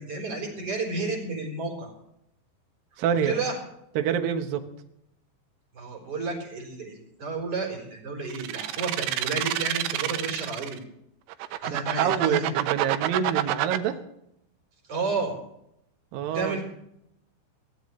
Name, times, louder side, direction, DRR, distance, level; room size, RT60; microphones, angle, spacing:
voice 1, 0.0-1.9 3.2-3.6 5.7-10.8 11.6-12.5 14.9-15.4 16.3-16.6, right 3 dB, 30° right, 1 dB, 4.6 m, -31 dB
voice 2, 3.0-3.4 4.0-4.6 11.7-13.9 16.1-16.6, right 8 dB, 70° right, 6 dB, 2.3 m, -27 dB
sound 1, 8.3-10.8 11.3-13.8, right 14 dB, 90° right, 3.3 m, -27 dB
22.5 x 17.5 x 3.2 m, 0.77 s
omnidirectional pair, 5.6 m